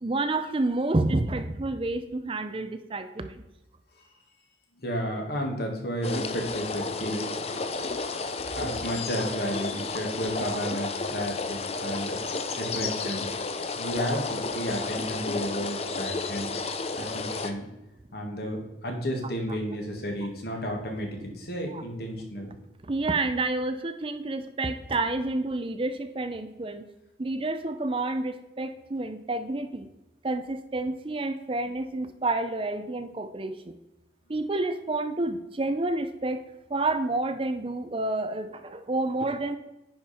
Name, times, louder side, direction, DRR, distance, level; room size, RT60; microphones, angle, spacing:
voice 1, 0.0-3.4 10.5-10.6 21.7-21.8 22.8-26.9 27.2-29.9 30.2-33.8 34.3-36.4 36.7-39.6, right 2 dB, 30° right, 9 dB, 0.5 m, -29 dB
voice 2, 4.8-7.9 8.5-12.2 12.6-13.3 13.8-16.5 17.0-17.7 18.1-22.5, equal, 55° left, 1 dB, 1.9 m, -32 dB
sound 1, 6.0-17.5, left 4 dB, 35° left, 0.6 m, -32 dB
10.0 x 5.2 x 4.3 m, 0.97 s
head